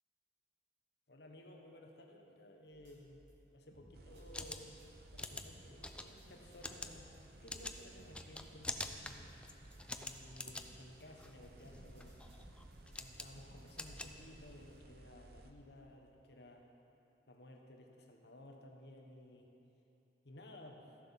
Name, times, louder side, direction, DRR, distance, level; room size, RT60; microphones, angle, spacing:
voice 1, 1.1-3.2 3.5-4.7 5.1-7.1 7.4-9.3 9.9-12.2 13.0-16.7 17.3-19.5 20.2-20.9, left 1 dB, 60° left, 2 dB, 1.1 m, -56 dB
sound 1, 2.7-3.3 3.7-10.2 10.6-13.9, equal, 80° right, 2.5 m, -62 dB
sound 2, 3.9-15.5, right 1 dB, 55° right, 0.8 m, -58 dB
sound 3, 4.1-14.8, left 2 dB, 5° left, 0.4 m, -47 dB
14.0 x 7.4 x 5.8 m, 2.8 s
head